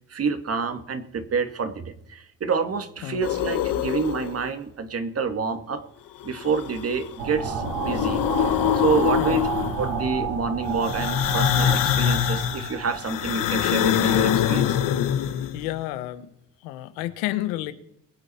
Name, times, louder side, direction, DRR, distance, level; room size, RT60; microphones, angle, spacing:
voice 1, 0.1-5.8 6.2-9.5 9.8-14.8, right 5 dB, 45° right, 8 dB, 1.9 m, -28 dB
sound 1, 3.2-4.5 6.2-7.1 7.5-10.0 10.8-15.7, left 10 dB, 65° left, 1.3 m, -24 dB
sound 2, 7.2-13.6, right 5 dB, 90° right, 2.6 m, -30 dB
voice 2, 15.5-16.3 16.6-17.7, left 15 dB, 90° left, 14 dB, 1.0 m, -30 dB
22.0 x 8.0 x 4.3 m, 0.75 s
supercardioid pair, 70°, 34 cm